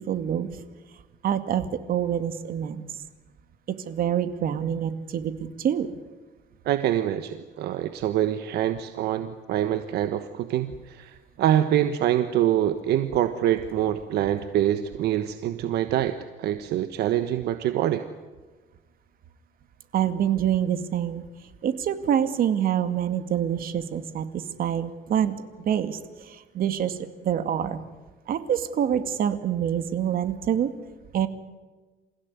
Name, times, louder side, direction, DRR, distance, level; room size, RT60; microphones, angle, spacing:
voice 1, 0.1-0.5 1.2-2.8 3.9-5.9 19.9-21.2 21.6-25.3 25.6-27.8 28.3-30.7 31.1-31.3, right 9 dB, 60° right, 10 dB, 2.2 m, -26 dB
voice 2, 6.6-18.0, right 11 dB, 75° right, 9 dB, 1.3 m, -25 dB
28.5 x 16.0 x 9.6 m, 1.3 s
cardioid pair, 110°, 17 cm